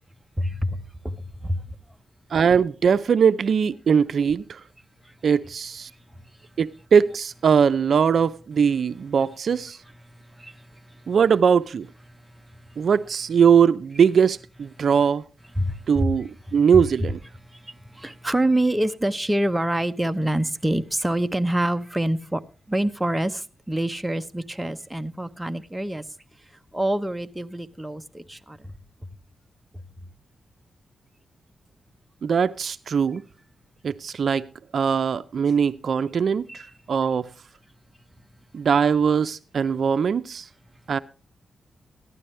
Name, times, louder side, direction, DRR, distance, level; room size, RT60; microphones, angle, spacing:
voice 1, 0.4-1.7 5.0-5.1 10.1-11.2 12.1-12.9 14.8-14.9 15.6-16.1 16.5-17.1 17.4-22.4 22.7-26.0 26.7-28.7 36.5-36.7, right 1 dB, 10° right, 0.8 m, -27 dB
voice 2, 2.3-4.6 5.2-5.9 6.6-9.8 11.1-11.9 12.8-15.2 15.9-17.2 32.2-33.2 33.8-34.5 34.7-37.3 38.5-40.5 40.9-41.0, right 7 dB, 65° right, 0.5 m, -21 dB
15.0 x 12.0 x 3.2 m
cardioid pair, 85°, 0 cm